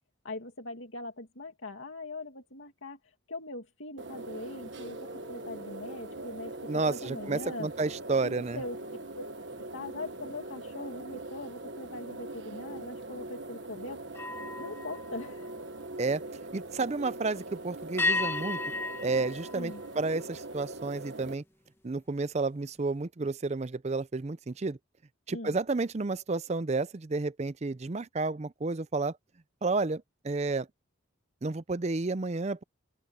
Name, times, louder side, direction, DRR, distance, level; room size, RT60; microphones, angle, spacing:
voice 1, 0.2-3.0 3.3-6.5 6.9-7.7 8.2-8.8 9.1-9.2 9.7-14.0 14.6-15.5 19.5-19.8 25.3-25.5, left 2 dB, 75° left, 2.4 m, -41 dB
Raw File, 4.0-21.3, right 2 dB, 60° right, 1.5 m, -42 dB
sound 1, 4.8-10.3 10.8-11.1 14.1-16.3 18.0-20.5, left 3 dB, 10° left, 1.3 m, -38 dB
voice 2, 6.7-8.6 16.0-16.2 16.5-18.6 19.0-21.4 21.8-24.8 25.3-29.1 29.6-30.7 31.4-32.6, right 3 dB, 35° right, 0.5 m, -31 dB
open air
head